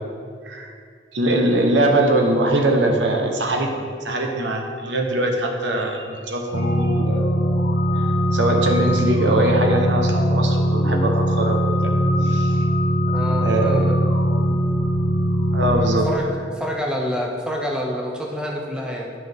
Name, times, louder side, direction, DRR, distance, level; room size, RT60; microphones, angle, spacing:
voice 1, 1.1-3.7 4.0-7.3 8.0-8.1 8.3-11.6 11.8-11.9 12.2-12.6 13.2-14.0 15.5-16.1, right 1 dB, 75° right, 2 dB, 1.0 m, -22 dB
sound 1, 6.5-16.1, equal, 60° left, 0.8 m, -20 dB
voice 2, 13.1-14.0 16.1-19.1, equal, 5° right, -1 dB, 0.7 m, -27 dB
9.4 x 5.9 x 3.6 m, 2.1 s
head